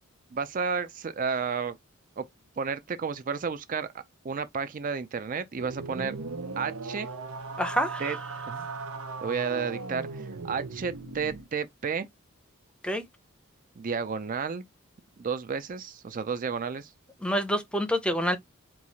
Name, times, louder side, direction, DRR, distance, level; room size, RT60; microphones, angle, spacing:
voice 1, 0.3-1.8 2.2-2.3 2.6-6.2 6.6-7.1 8.0-8.2 8.5-8.7 9.2-12.1 13.8-14.6 15.2-16.9, right 5 dB, 40° right, 0.4 m, -32 dB
sound 1, 5.5-11.5, right 4 dB, 85° right, 0.8 m, -38 dB
voice 2, 7.6-8.2 12.8-13.0 17.2-18.4, equal, 5° left, 0.6 m, -27 dB
4.6 x 2.4 x 4.0 m
head